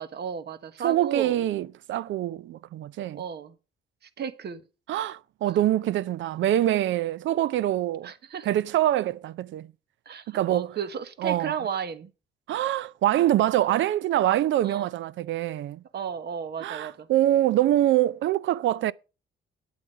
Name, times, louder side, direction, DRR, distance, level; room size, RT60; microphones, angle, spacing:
voice 1, 0.0-1.4 3.1-3.5 4.2-4.6 5.5-5.6 8.0-8.5 10.1-12.1 14.6-14.9 15.9-17.1, right 7 dB, 55° right, 1.3 m, -34 dB
voice 2, 0.8-3.2 4.9-8.1 8.4-9.7 10.3-10.7 11.2-11.6 12.5-15.8 16.6-18.9, right 13 dB, 70° right, 0.5 m, -24 dB
9.5 x 8.5 x 5.4 m
cardioid pair, 90°, 20 cm